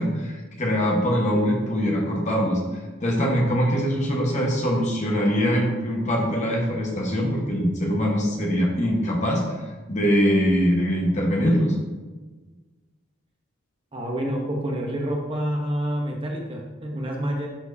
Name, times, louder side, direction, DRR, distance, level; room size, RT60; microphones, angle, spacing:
voice 1, 0.0-2.6 3.0-11.7, equal, 35° left, -1 dB, 1.3 m, -23 dB
voice 2, 13.9-17.5, equal, 25° right, -1 dB, 0.9 m, -28 dB
11.5 x 4.5 x 2.7 m, 1.3 s
head